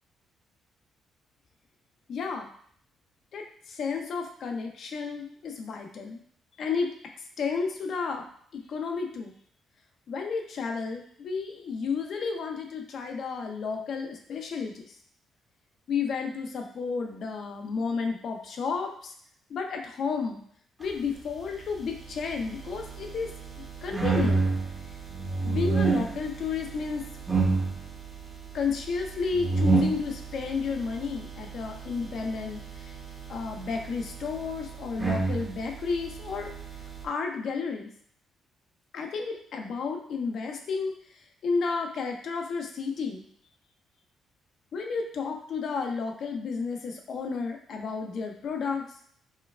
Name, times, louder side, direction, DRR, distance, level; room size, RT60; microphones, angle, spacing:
voice 1, 2.1-2.5 3.3-6.2 6.6-6.9 7.4-8.2 8.5-9.3 10.1-14.9 15.9-19.1 19.5-20.4 20.8-23.3 23.8-24.5 25.4-27.1 28.5-32.9 33.3-36.5 37.0-37.9 38.9-40.9 41.4-43.2 44.7-48.9, left 5 dB, 65° left, 3 dB, 0.5 m, -32 dB
sound 1, 21.6-37.0, right 4 dB, 20° right, 0.7 m, -31 dB
4.3 x 2.2 x 2.3 m, 0.63 s
cardioid pair, 90°, 0 cm